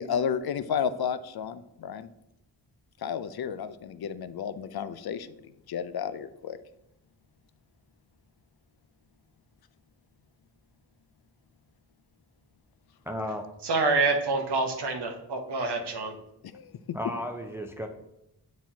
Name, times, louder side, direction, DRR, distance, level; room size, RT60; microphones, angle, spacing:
voice 1, 0.0-2.1 3.0-5.3 5.7-6.6 16.4-16.7, left 7 dB, 65° left, 13 dB, 0.5 m, -32 dB
voice 2, 13.1-13.4 16.9-17.9, left 1 dB, 5° right, 4 dB, 0.6 m, -34 dB
voice 3, 13.6-16.1, right 3 dB, 75° right, 4 dB, 1.0 m, -27 dB
7.3 x 4.6 x 2.8 m, 0.83 s
cardioid pair, 45°, 41 cm